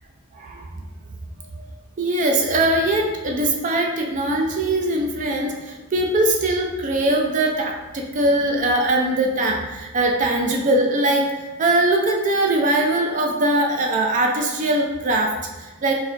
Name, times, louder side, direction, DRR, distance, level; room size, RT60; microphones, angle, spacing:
voice 1, 0.3-0.7 1.6-1.7 2.0-11.3 11.6-15.9, right 1 dB, 35° right, 1 dB, 0.4 m, -21 dB
4.4 x 2.3 x 2.5 m, 1.2 s
head